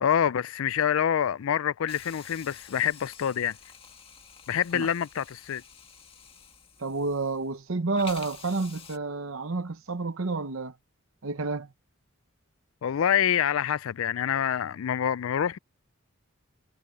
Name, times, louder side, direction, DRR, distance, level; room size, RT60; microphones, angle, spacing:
voice 1, 0.0-3.6 4.5-5.6 12.8-15.6, left 9 dB, 70° left, 0.4 m, -26 dB
Hiss, 1.9-7.6 7.9-9.0, left 6 dB, 25° left, 1.9 m, -49 dB
voice 2, 6.8-10.7 11.2-11.7, right 3 dB, 70° right, 0.9 m, -30 dB
head